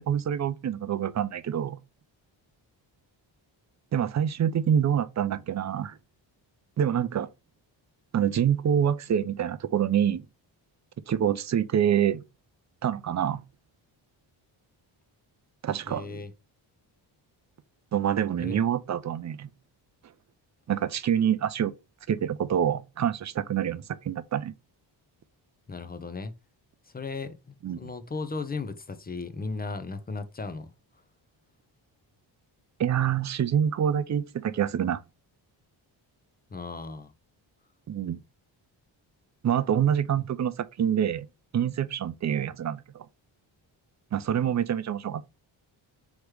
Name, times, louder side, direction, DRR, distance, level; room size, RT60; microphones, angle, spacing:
voice 1, 0.0-1.8 3.9-6.0 6.8-7.3 8.1-10.2 11.1-12.2 12.8-13.4 15.6-16.2 17.9-19.5 20.7-21.7 22.1-24.5 27.6-27.8 32.8-35.0 37.9-38.2 39.4-41.3 41.5-43.1 44.1-45.2, right 9 dB, 35° right, 0.4 m, -26 dB
voice 2, 15.9-16.3 18.4-18.6 25.7-26.3 26.9-30.7 36.5-37.1, left 4 dB, 20° left, 0.6 m, -36 dB
3.2 x 3.1 x 4.7 m
cardioid pair, 75°, 48 cm